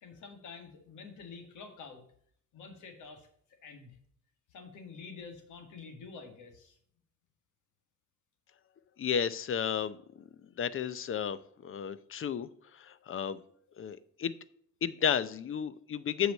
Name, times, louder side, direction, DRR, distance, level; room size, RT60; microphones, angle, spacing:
voice 1, 0.0-2.0 2.5-3.3 3.6-4.0 4.5-6.8, left 5 dB, 80° left, 5 dB, 1.9 m, -48 dB
voice 2, 9.0-10.0 10.6-13.4 13.8-14.4 14.8-16.3, left 8 dB, 45° left, 16 dB, 0.7 m, -33 dB
7.8 x 4.9 x 5.3 m, 0.63 s
cardioid pair, 90°, 30 cm